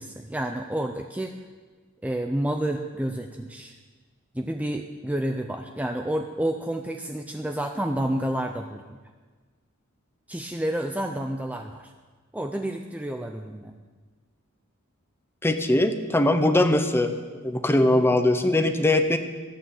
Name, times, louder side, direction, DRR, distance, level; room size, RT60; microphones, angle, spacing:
voice 1, 0.0-1.3 2.0-3.8 4.3-9.0 10.3-11.9 12.3-13.7, right 1 dB, 5° right, 4 dB, 0.5 m, -29 dB
voice 2, 15.4-17.1 17.4-19.2, left 1 dB, 10° left, 8 dB, 0.8 m, -21 dB
14.0 x 8.8 x 7.3 m, 1.4 s
head